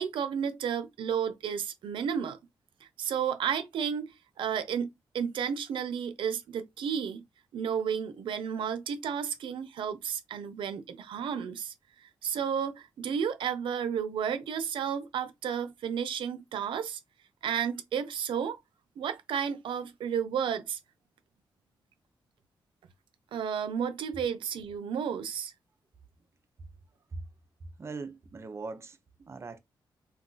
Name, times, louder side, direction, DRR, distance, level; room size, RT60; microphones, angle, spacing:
voice 1, 0.0-2.4 3.0-7.2 7.5-11.7 12.0-17.0 17.4-18.6 19.0-20.8 23.3-25.5, right 7 dB, 90° right, 0.6 m, -32 dB
voice 2, 27.8-29.6, right 3 dB, 35° right, 0.5 m, -41 dB
2.4 x 2.3 x 3.8 m
wide cardioid pair, 120°, 8 cm